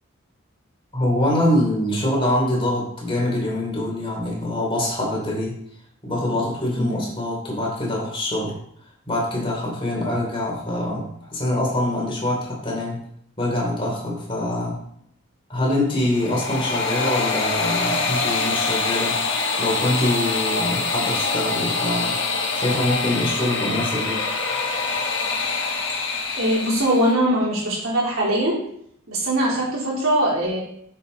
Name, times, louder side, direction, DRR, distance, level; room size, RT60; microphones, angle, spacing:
voice 1, 0.9-5.6 6.0-8.5 9.1-13.1 13.4-14.8 15.5-19.2 19.6-22.2 22.5-24.3, left 1 dB, 25° left, -3 dB, 3.2 m, -24 dB
sound 1, 16.0-27.1, left 3 dB, 60° left, 1.5 m, -25 dB
voice 2, 26.4-28.6 29.1-30.6, right 1 dB, 80° right, -4 dB, 3.6 m, -21 dB
9.6 x 7.4 x 4.0 m, 0.69 s
head